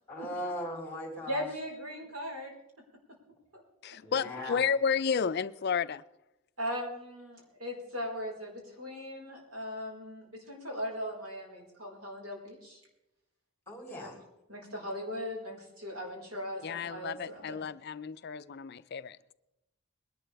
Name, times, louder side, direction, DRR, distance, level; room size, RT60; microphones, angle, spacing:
voice 1, 0.1-1.4 4.0-4.6 13.7-14.2, left 1 dB, 10° left, 3.5 m, -38 dB
voice 2, 1.3-2.5 3.5-3.9 6.6-12.8 13.9-14.1 14.5-17.6, equal, 85° right, 4.7 m, -39 dB
voice 3, 3.8-6.0 16.6-19.2, left 6 dB, 50° left, 0.4 m, -32 dB
21.5 x 11.5 x 3.4 m
head